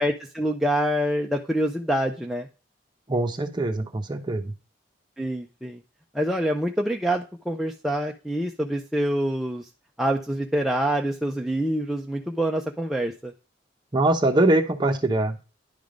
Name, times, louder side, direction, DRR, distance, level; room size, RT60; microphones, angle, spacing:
voice 1, 0.0-2.5 5.2-5.8 6.1-9.7 10.0-13.3, right 1 dB, ahead, 1 dB, 0.5 m, -26 dB
voice 2, 3.1-4.5 13.9-15.4, right 2 dB, 25° right, 5 dB, 0.9 m, -23 dB
10.5 x 3.7 x 5.0 m, 0.32 s
head